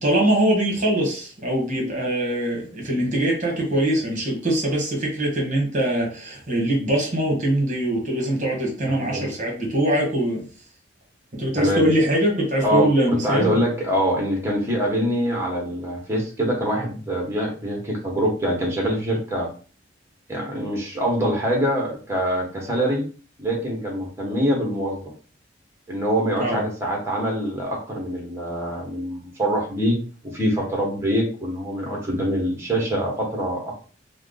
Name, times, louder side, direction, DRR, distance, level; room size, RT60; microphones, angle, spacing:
voice 1, 0.0-10.4 11.4-13.5 26.4-26.6, right 1 dB, 40° right, -1 dB, 1.2 m, -22 dB
voice 2, 8.9-9.3 11.6-11.8 12.6-12.9 13.2-19.5 20.3-23.1 23.4-25.0 25.9-30.0 30.2-33.8, equal, 15° right, 0 dB, 1.1 m, -24 dB
3.4 x 2.0 x 3.6 m, 0.39 s
head